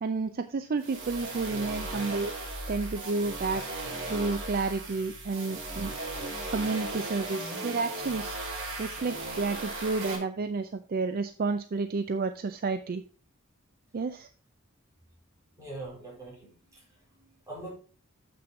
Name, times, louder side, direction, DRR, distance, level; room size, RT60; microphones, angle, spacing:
voice 1, 0.0-2.3 2.7-3.6 4.0-5.9 6.5-8.4 8.8-13.0 13.9-14.3, right 3 dB, 45° right, 10 dB, 0.4 m, -31 dB
sound 1, 0.8-10.2, right 2 dB, 60° right, 3.5 m, -36 dB
voice 2, 15.6-17.7, right 2 dB, 15° right, -5 dB, 4.3 m, -43 dB
7.6 x 6.1 x 4.6 m, 0.40 s
head